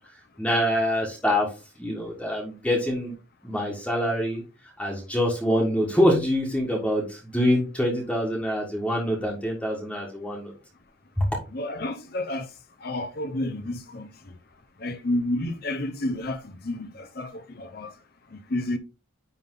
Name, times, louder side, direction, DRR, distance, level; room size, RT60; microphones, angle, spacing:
voice 1, 0.4-1.5 1.8-3.1 3.4-4.4 4.8-10.5 11.2-11.3, equal, 5° left, 1.5 m, -25 dB
voice 2, 11.5-12.5 12.8-14.3 14.8-17.9 18.3-18.8, left 1 dB, 50° left, 0.8 m, -30 dB
9.8 x 3.6 x 3.8 m
head